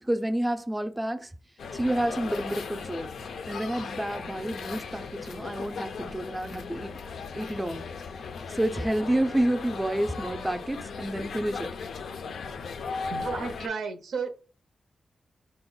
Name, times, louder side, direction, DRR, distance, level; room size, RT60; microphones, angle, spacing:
voice 1, 0.0-1.3 1.7-3.1 3.5-7.0 7.3-7.9 8.5-11.7, right 1 dB, 10° right, 0.4 m, -29 dB
sound 1, 1.6-13.7, left 5 dB, 80° left, 0.4 m, -37 dB
voice 2, 13.1-14.3, right 5 dB, 90° right, 0.6 m, -32 dB
4.1 x 2.1 x 3.8 m
cardioid pair, 85°, 0 cm